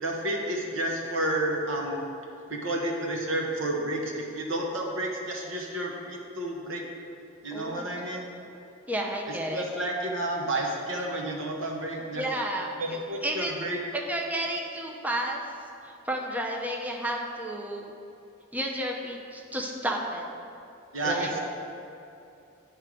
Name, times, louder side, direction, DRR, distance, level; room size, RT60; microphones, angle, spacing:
voice 1, 0.0-2.0 2.5-6.8 7.4-8.3 9.5-12.2 12.8-13.8 20.9-21.4, right 1 dB, 70° right, 0 dB, 1.1 m, -30 dB
voice 2, 7.5-7.8 8.5-8.6 8.9-9.6 12.1-13.5 13.9-15.4 15.8-17.9 18.5-20.3 21.0-21.4, right 1 dB, 10° right, 0 dB, 0.6 m, -32 dB
9.3 x 3.3 x 6.1 m, 2.7 s
head